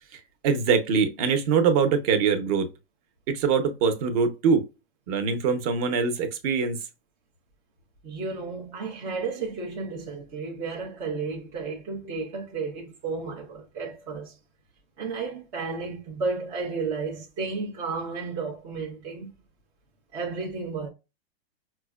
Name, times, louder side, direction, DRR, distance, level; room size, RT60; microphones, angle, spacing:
voice 1, 0.1-2.7 3.3-4.6 5.1-6.8, right 6 dB, 35° right, 0.7 m, -23 dB
voice 2, 8.0-14.4 15.0-19.3 20.1-20.9, right 4 dB, 10° right, 0.3 m, -33 dB
5.8 x 2.1 x 2.3 m
supercardioid pair, 160°, 31 cm